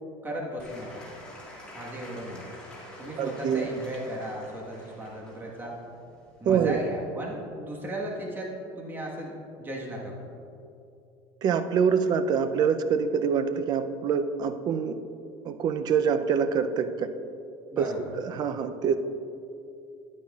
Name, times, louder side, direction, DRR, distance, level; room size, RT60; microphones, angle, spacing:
voice 1, 0.2-1.0 1.7-2.5 3.0-5.7 6.4-10.1 17.7-18.1, right 1 dB, 20° right, -2 dB, 1.4 m, -36 dB
Applause / Crowd, 0.6-6.9, left 1 dB, 10° left, 1.8 m, -47 dB
voice 2, 3.2-3.7 6.4-6.8 11.4-14.9 15.4-17.1 17.8-19.0, right 6 dB, 40° right, 10 dB, 0.5 m, -25 dB
10.0 x 9.5 x 2.4 m, 2.6 s
supercardioid pair, 130°, 11 cm